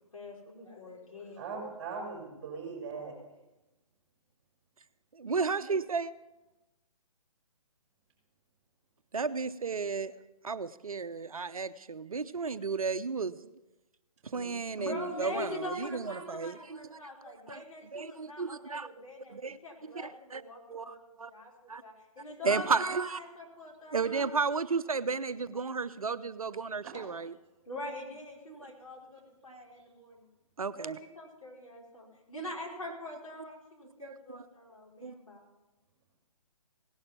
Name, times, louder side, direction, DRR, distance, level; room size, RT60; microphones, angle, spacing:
voice 1, 0.1-1.7 14.3-21.0 21.3-24.3 26.0-26.1 27.7-30.3 30.7-35.5, left 2 dB, 65° left, -2 dB, 4.7 m, -44 dB
voice 2, 1.4-3.1 26.8-27.0, right 4 dB, 15° right, -2 dB, 5.5 m, -40 dB
voice 3, 5.2-6.1 9.1-10.1 10.4-13.4 14.3-17.0 17.5-17.6 17.9-18.9 19.3-19.6 19.9-20.4 20.7-21.3 21.7-21.8 22.4-23.2 23.9-27.3 28.5-28.6 29.5-29.6 30.6-31.0 32.4-32.5 34.0-34.5 35.0-35.1, right 4 dB, 70° right, 13 dB, 0.6 m, -33 dB
17.5 x 11.5 x 5.8 m, 1.0 s
figure-of-eight pair, 135°, 19 cm